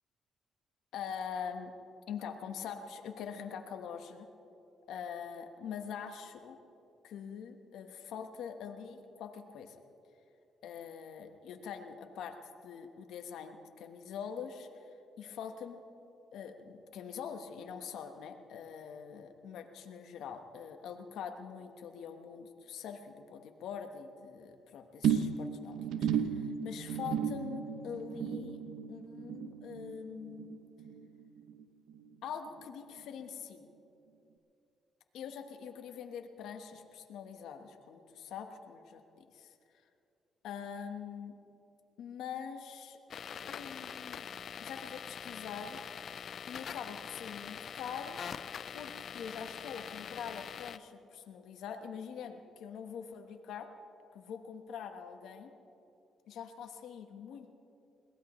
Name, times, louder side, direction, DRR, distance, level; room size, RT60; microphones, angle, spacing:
voice 1, 0.9-1.7 2.1-4.3 4.9-6.6 7.0-9.8 10.6-12.4 12.6-14.8 15.2-15.8 16.3-28.6 28.9-30.6 32.2-33.7 35.1-39.5 40.4-41.3 42.0-43.0 43.3-44.3 44.6-45.8 46.5-48.2 48.7-53.7 54.1-55.5 56.3-57.5, left 7 dB, 80° left, 5 dB, 1.2 m, -44 dB
sound 1, 25.0-31.6 31.9-32.3 32.6-32.7, right 8 dB, 80° right, 0.7 m, -35 dB
sound 2, 43.1-50.8, left 7 dB, 60° left, 0.5 m, -44 dB
22.0 x 18.5 x 3.2 m, 2.7 s
cardioid pair, 90°, 0 cm